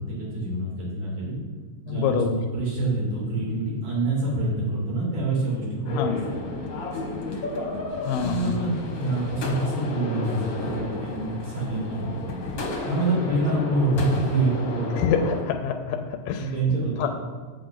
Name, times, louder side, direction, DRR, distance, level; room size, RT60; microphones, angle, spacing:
voice 1, 0.0-1.4 1.8-5.9 6.4-6.7 7.0-7.2 8.2-12.2 12.9-14.9 16.4-17.1, right 2 dB, 75° right, -6 dB, 4.4 m, -26 dB
voice 2, 1.9-2.4 6.0-6.2 8.1-8.7 14.9-16.0 16.3-16.5 17.0-17.1, left 7 dB, 85° left, 5 dB, 2.2 m, -25 dB
sound 1, 5.8-15.4, left 2 dB, 60° left, 1.2 m, -32 dB
8.8 x 7.6 x 3.9 m, 1.5 s
omnidirectional pair, 3.8 m